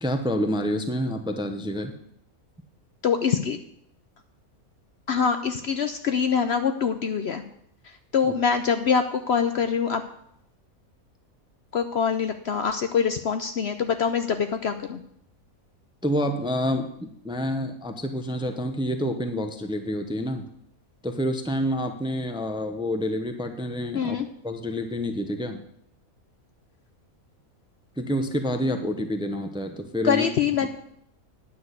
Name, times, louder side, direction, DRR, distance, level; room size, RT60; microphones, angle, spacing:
voice 1, 0.0-1.9 16.0-20.4 21.0-24.2 24.4-25.6 28.0-30.3 30.6-30.7, equal, 5° right, 6 dB, 0.6 m, -28 dB
voice 2, 3.0-3.6 5.1-7.4 8.1-10.0 11.7-15.0 23.9-24.3 30.0-30.7, left 6 dB, 60° left, 8 dB, 0.8 m, -24 dB
9.6 x 6.2 x 8.1 m, 0.72 s
omnidirectional pair, 1.5 m